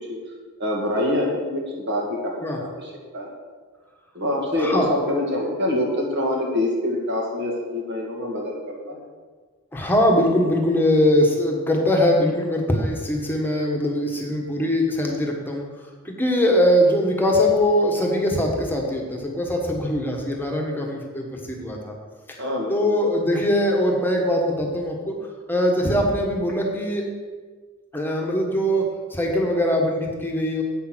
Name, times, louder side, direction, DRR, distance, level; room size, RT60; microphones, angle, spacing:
voice 1, 0.6-3.3 4.1-9.0 22.4-22.9, left 1 dB, 50° right, -1 dB, 2.1 m, -25 dB
voice 2, 4.6-4.9 9.7-15.6 16.0-21.9 22.3-22.4 22.7-25.2 25.5-27.1 27.9-30.6, left 1 dB, 10° left, 0 dB, 1.4 m, -22 dB
8.6 x 6.7 x 6.2 m, 1.5 s
head